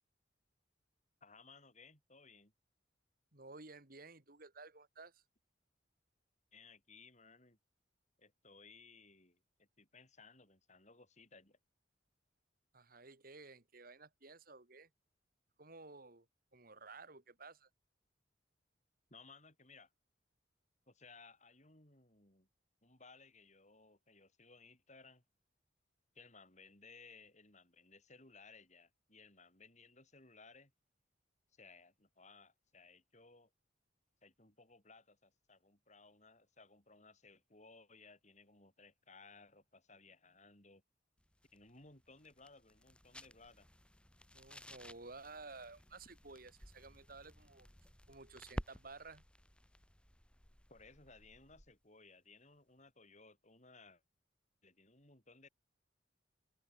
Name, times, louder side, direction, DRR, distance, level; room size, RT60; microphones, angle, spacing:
voice 1, 1.2-2.5 6.5-7.6 8.2-11.6 19.1-19.9 20.9-22.5 22.8-25.2 26.1-30.7 31.5-33.5 34.2-40.8 41.5-43.7 50.7-54.0 54.6-55.5, left 4 dB, 40° left, 7.9 m, -61 dB
voice 2, 3.3-5.2 12.7-14.9 15.6-16.3 16.5-17.7 44.3-47.7 48.1-49.2, right 3 dB, 50° right, 2.6 m, -54 dB
sound 1, 41.2-51.8, equal, 5° left, 2.4 m, -53 dB
head